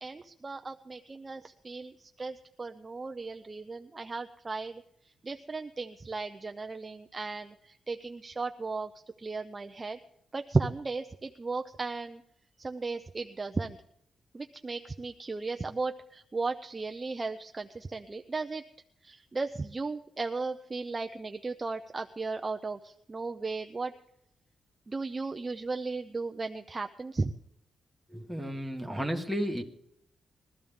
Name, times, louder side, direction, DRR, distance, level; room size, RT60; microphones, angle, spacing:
voice 1, 0.0-4.8 5.2-8.9 9.2-10.0 10.3-12.2 12.6-13.8 14.3-18.6 19.0-23.9 24.9-27.3, right 3 dB, 20° right, 6 dB, 0.5 m, -35 dB
voice 2, 28.1-29.6, equal, ahead, 5 dB, 1.5 m, -33 dB
21.0 x 13.5 x 3.6 m, 0.75 s
wide cardioid pair, 160°, 0 cm